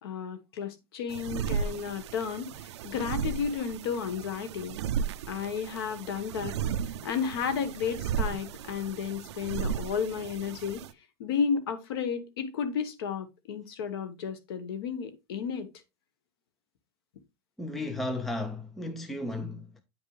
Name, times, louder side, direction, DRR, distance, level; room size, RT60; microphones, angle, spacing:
voice 1, 0.0-4.8 5.3-6.6 7.0-10.8 11.2-15.7, left 6 dB, 60° left, 1.3 m, -32 dB
sound 1, 1.1-10.9, right 7 dB, 90° right, 0.6 m, -35 dB
voice 2, 17.6-19.7, left 2 dB, ahead, 0.3 m, -34 dB
9.0 x 5.2 x 3.3 m
supercardioid pair, 180°, 14 cm